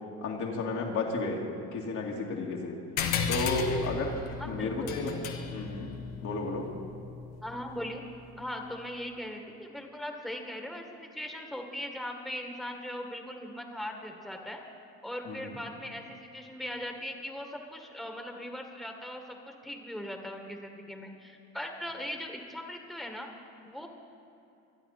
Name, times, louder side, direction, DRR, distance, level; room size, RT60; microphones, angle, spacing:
voice 1, 0.2-1.4 1.7-2.8 3.3-4.2 4.4-5.1 5.5-5.9 6.2-6.7 15.3-15.5, left 3 dB, 60° left, -1 dB, 2.3 m, -32 dB
sound 1, 3.0-7.9, left 5 dB, 80° left, 1.4 m, -35 dB
voice 2, 4.4-5.0 7.4-8.0 8.4-14.6 15.0-23.3 23.7-23.9, left 1 dB, ahead, 3 dB, 1.9 m, -39 dB
25.0 x 9.0 x 4.3 m, 2.8 s
hypercardioid pair, 70°, 34 cm